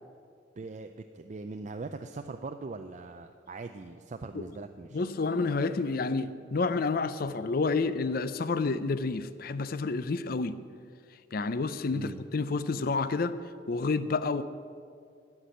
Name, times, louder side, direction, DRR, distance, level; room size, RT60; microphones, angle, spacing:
voice 1, 0.6-5.0 11.9-12.2, right 3 dB, 40° right, 6 dB, 0.4 m, -41 dB
voice 2, 4.9-10.6 11.3-13.4 13.7-14.4, left 3 dB, 50° left, 13 dB, 0.5 m, -29 dB
13.5 x 5.9 x 9.8 m, 2.3 s
head